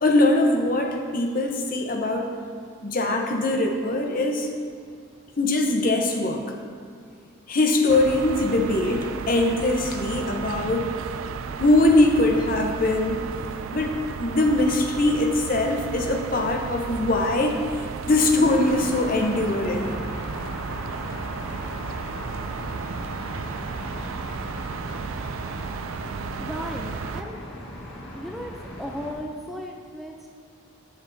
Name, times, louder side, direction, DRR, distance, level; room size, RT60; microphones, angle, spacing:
voice 1, 0.0-2.3 2.8-4.5 5.4-6.4 7.5-10.9 11.6-13.2 13.7-19.9, left 2 dB, 40° left, 2 dB, 0.8 m, -22 dB
sound 1, 7.9-27.2, right 5 dB, 75° right, 0.4 m, -34 dB
sound 2, 18.4-29.1, left 1 dB, 90° left, 2.0 m, -37 dB
voice 2, 26.4-27.4 28.1-28.5 28.8-30.3, equal, ahead, -1 dB, 0.4 m, -35 dB
12.0 x 7.8 x 2.7 m, 2.2 s
head